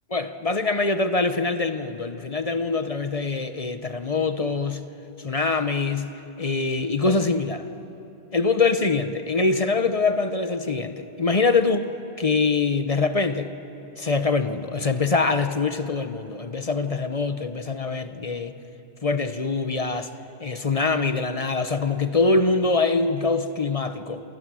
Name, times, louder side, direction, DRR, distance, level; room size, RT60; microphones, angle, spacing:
voice 1, 0.1-4.8 5.2-6.1 6.4-7.7 8.3-11.9 12.2-13.5 14.0-18.5 19.0-20.1 20.4-24.2, left 3 dB, 35° left, 9 dB, 0.9 m, -24 dB
29.0 x 27.0 x 6.2 m, 2.9 s
omnidirectional pair, 1.1 m